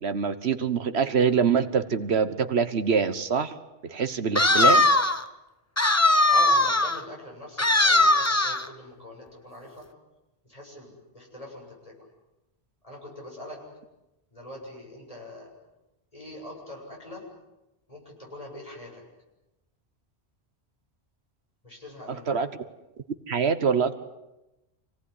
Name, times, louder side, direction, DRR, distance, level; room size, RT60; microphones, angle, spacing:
voice 1, 0.0-3.6 3.8-4.8 22.1-22.5 23.3-24.0, right 6 dB, 80° right, 11 dB, 1.5 m, -24 dB
sound 1, 4.4-5.2 5.8-7.0 7.6-8.7, left 2 dB, 15° left, 1.0 m, -20 dB
voice 2, 6.3-9.9 10.5-11.9 12.8-13.6 14.3-15.5 16.1-17.2 17.9-19.0 21.6-22.3, left 1 dB, 35° left, -1 dB, 7.6 m, -42 dB
27.0 x 18.0 x 10.0 m, 0.97 s
omnidirectional pair, 1.1 m